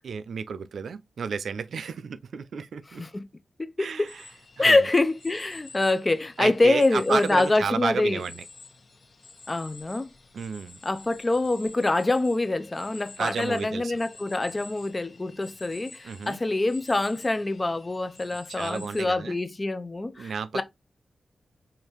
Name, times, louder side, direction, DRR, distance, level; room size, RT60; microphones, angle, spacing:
voice 1, 0.0-3.0 3.8-4.3 4.6-4.8 6.4-8.4 10.3-10.8 13.2-14.0 16.0-16.4 18.5-19.4 20.2-20.6, right 6 dB, 85° right, 0.3 m, -32 dB
sound 1, 4.1-19.0, left 3 dB, 45° left, 0.8 m, -49 dB
voice 2, 4.6-8.2 9.5-10.1 10.8-20.6, left 2 dB, 25° left, 0.4 m, -25 dB
4.9 x 2.7 x 2.9 m
wide cardioid pair, 135°, 0 cm